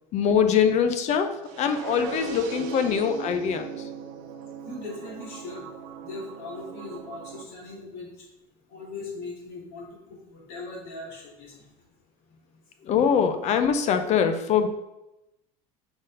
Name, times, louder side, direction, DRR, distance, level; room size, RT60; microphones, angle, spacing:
voice 1, 0.1-1.3 1.6-3.7 12.9-14.7, left 7 dB, 40° left, 8 dB, 0.7 m, -23 dB
sound 1, 1.4-7.4, right 7 dB, 65° right, 1.1 m, -38 dB
voice 2, 4.6-5.7 6.0-8.3 8.7-11.7, left 3 dB, 55° left, -2 dB, 2.6 m, -39 dB
6.0 x 4.1 x 5.2 m, 0.93 s
cardioid pair, 145°, 18 cm